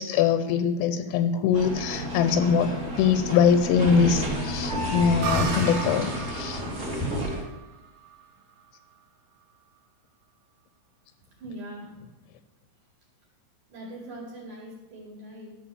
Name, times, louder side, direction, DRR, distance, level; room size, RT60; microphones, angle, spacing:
voice 1, 0.0-6.6, left 6 dB, 85° left, 10 dB, 3.2 m, -23 dB
sound 1, 1.5-7.4, equal, 25° right, 1.4 m, -30 dB
sound 2, 5.2-8.8, right 7 dB, 75° right, 3.0 m, -36 dB
voice 2, 11.2-11.9 13.7-15.6, right 1 dB, 50° right, -4 dB, 3.0 m, -41 dB
13.5 x 4.5 x 7.0 m, 1.0 s
omnidirectional pair, 5.7 m